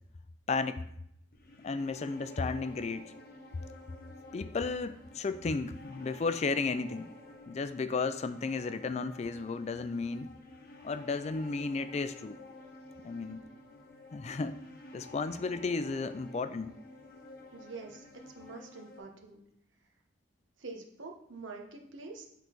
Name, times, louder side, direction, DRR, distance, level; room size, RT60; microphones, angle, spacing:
voice 1, 0.5-0.9 1.6-3.1 4.3-7.1 7.5-10.3 10.8-12.4 13.0-13.4 14.1-14.6 14.9-16.7, left 4 dB, 35° left, 12 dB, 0.3 m, -33 dB
sound 1, 1.3-19.0, left 1 dB, 50° left, 0.9 m, -51 dB
voice 2, 17.5-18.0 18.3-19.4 20.6-22.3, right 3 dB, 90° right, 3 dB, 1.2 m, -45 dB
8.1 x 3.9 x 4.5 m, 0.74 s
head